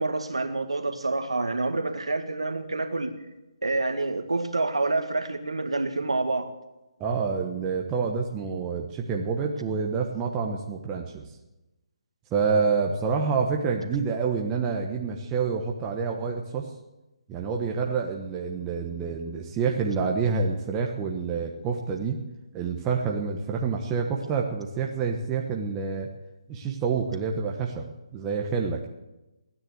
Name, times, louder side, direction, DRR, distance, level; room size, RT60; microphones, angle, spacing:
voice 1, 0.0-3.1 3.6-6.5, right 2 dB, 90° right, 7 dB, 2.0 m, -27 dB
voice 2, 7.0-11.2 12.3-16.6 17.3-22.2 22.5-26.1 26.5-27.8 28.1-28.9, right 5 dB, 15° right, 0 dB, 1.2 m, -27 dB
16.0 x 10.0 x 8.2 m, 1.0 s
figure-of-eight pair, 155°, 3 cm